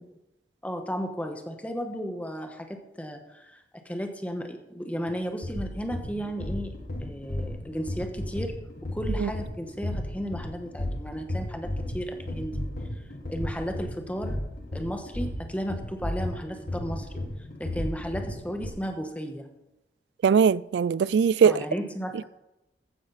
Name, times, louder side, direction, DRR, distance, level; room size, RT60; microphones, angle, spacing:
voice 1, 0.6-6.7 7.0-8.6 8.9-12.6 13.3-14.4 14.7-17.1 17.6-19.5 21.4-22.2, equal, 10° left, 1.4 m, -34 dB
sound 1, 5.1-18.7, left 1 dB, 55° left, 1.9 m, -34 dB
voice 2, 20.2-21.6, right 6 dB, 75° right, 0.3 m, -21 dB
15.0 x 9.8 x 4.2 m
head